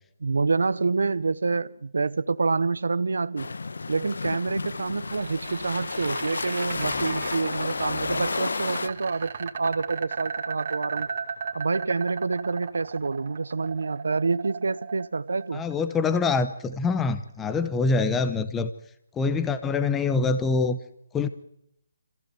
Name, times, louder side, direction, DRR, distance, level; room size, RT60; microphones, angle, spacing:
voice 1, 0.2-3.5 3.9-11.1 11.5-15.6, right 4 dB, 85° right, 0.7 m, -27 dB
sound 1, 3.4-8.9, left 3 dB, 90° left, 0.9 m, -31 dB
Race car auto racing, 4.6-8.7, left 7 dB, 30° left, 2.0 m, -47 dB
sound 2, 4.8-16.8, right 6 dB, 40° right, 2.4 m, -36 dB
voice 2, 15.5-18.7 19.2-20.8 21.1-21.3, left 4 dB, 5° left, 0.7 m, -25 dB
25.5 x 15.5 x 7.9 m
hypercardioid pair, 170°, 0 cm